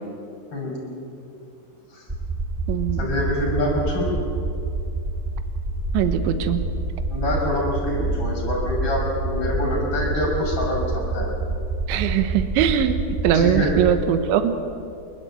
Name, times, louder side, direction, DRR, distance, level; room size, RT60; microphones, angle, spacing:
voice 1, 0.5-0.9 1.9-2.0 3.0-4.1 7.1-11.3 13.3-13.7, left 1 dB, 30° left, -2 dB, 6.9 m, -25 dB
sound 1, 2.1-14.0, right 2 dB, 10° right, 1.2 m, -27 dB
voice 2, 2.7-3.1 5.9-6.7 11.9-13.0 13.2-14.6, right 9 dB, 80° right, 9 dB, 3.3 m, -21 dB
29.0 x 12.0 x 9.0 m, 2.5 s
omnidirectional pair, 5.5 m